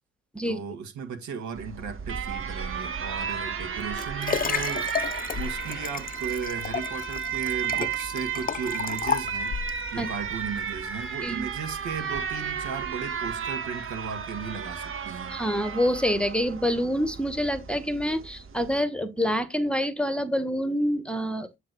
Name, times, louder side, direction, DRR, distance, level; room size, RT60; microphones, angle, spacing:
voice 1, 0.5-9.5 9.9-15.4, right 6 dB, 60° right, 1.9 m, -36 dB
Alarm, 1.6-18.8, right 7 dB, 40° right, 1.4 m, -33 dB
Liquid, 3.6-9.8 10.5-10.6, left 7 dB, 25° left, 0.7 m, -32 dB
voice 2, 15.3-21.5, equal, 5° left, 1.3 m, -26 dB
8.6 x 3.3 x 6.1 m
hypercardioid pair, 50°, 33 cm